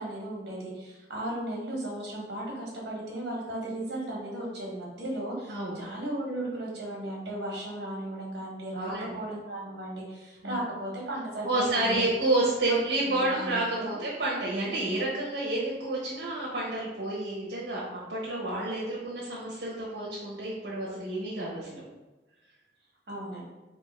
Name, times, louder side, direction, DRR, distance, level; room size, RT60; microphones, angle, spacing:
voice 1, 0.0-12.1 12.7-12.8 13.1-13.9 23.1-23.4, right 1 dB, 70° right, -3 dB, 1.3 m, -36 dB
voice 2, 5.5-5.8 8.7-9.1 10.4-10.6 11.4-21.8, right 2 dB, 85° right, -6 dB, 0.8 m, -30 dB
3.5 x 2.6 x 4.2 m, 1.1 s
head